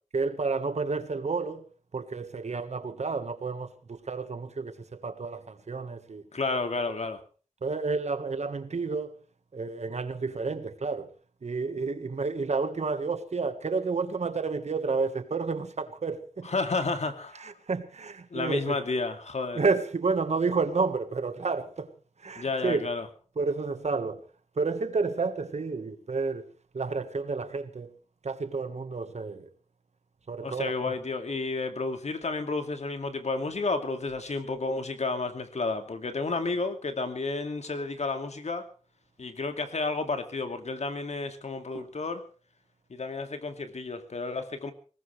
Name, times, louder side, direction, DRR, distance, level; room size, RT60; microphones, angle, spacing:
voice 1, 0.1-1.6 1.9-6.2 7.6-9.1 9.5-11.1 11.4-16.5 17.4-18.8 19.5-21.9 22.2-22.9 23.4-24.3 24.6-26.4 26.7-27.9 28.2-29.5 30.3-30.7 41.7-41.9, right 4 dB, 60° right, 1.6 m, -30 dB
voice 2, 6.3-7.2 16.4-17.4 18.3-19.6 22.4-23.1 30.4-38.7 39.2-42.2 42.9-44.7, left 3 dB, 60° left, 2.5 m, -31 dB
21.0 x 19.0 x 3.4 m
wide cardioid pair, 105°, 13 cm